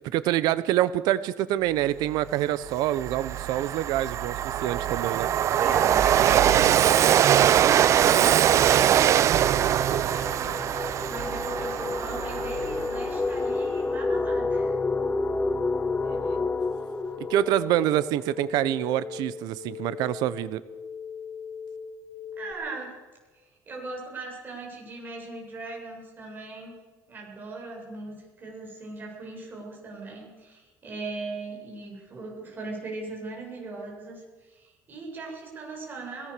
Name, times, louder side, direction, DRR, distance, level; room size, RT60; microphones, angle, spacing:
voice 1, 0.1-5.3 16.0-16.4 17.3-20.6, right 13 dB, 80° right, 16 dB, 1.1 m, -26 dB
Train, 2.2-2.3 2.7-13.1, right 10 dB, 45° right, 0.7 m, -22 dB
voice 2, 5.6-14.8 22.4-23.0 23.3-26.7 27.1-36.3, right 3 dB, 30° right, 0 dB, 7.7 m, -39 dB
sound 1, 7.3-18.8, left 3 dB, 15° left, 0.8 m, -31 dB
sound 2, 15.6-22.5, left 6 dB, 40° left, 6.0 m, -40 dB
22.0 x 18.0 x 6.9 m, 1.3 s
cardioid pair, 140°, 7 cm